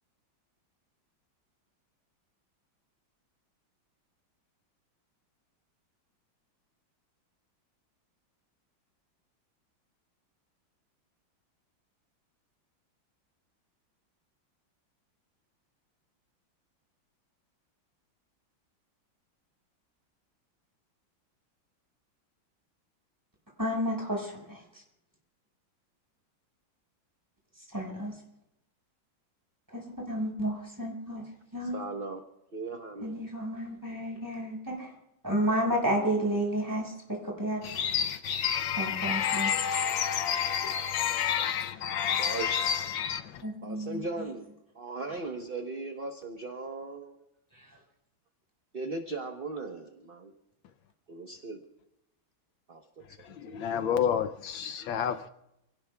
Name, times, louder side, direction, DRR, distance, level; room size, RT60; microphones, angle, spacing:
voice 1, 23.6-24.6 27.7-28.1 29.7-31.2 31.5-31.8 33.0-34.9 35.2-37.6 38.8-39.5 43.4-44.0, equal, 10° right, 5.2 m, -31 dB
voice 2, 31.6-32.2 32.5-33.2 42.2-42.6 43.6-44.5 44.7-47.2 48.7-50.3 51.1-51.6 52.7-52.8 53.3-53.9, right 3 dB, 35° right, 1.1 m, -38 dB
voice 3, 37.6-43.4 53.2-55.3, left 8 dB, 75° left, 1.5 m, -29 dB
27.5 x 17.5 x 2.4 m
omnidirectional pair, 2.2 m